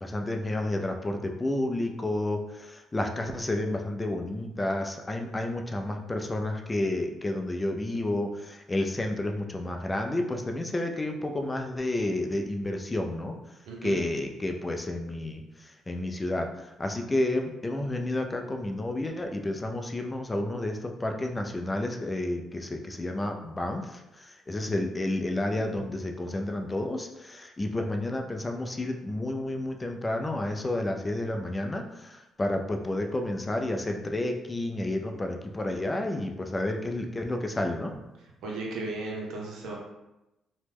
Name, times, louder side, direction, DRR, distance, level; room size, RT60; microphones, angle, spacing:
voice 1, 0.0-13.4 13.8-37.9, left 1 dB, 20° left, 3 dB, 0.4 m, -31 dB
voice 2, 13.7-14.0 38.4-39.7, right 2 dB, 80° right, -2 dB, 0.7 m, -35 dB
3.0 x 2.1 x 3.3 m, 0.96 s
cardioid pair, 90°, 0 cm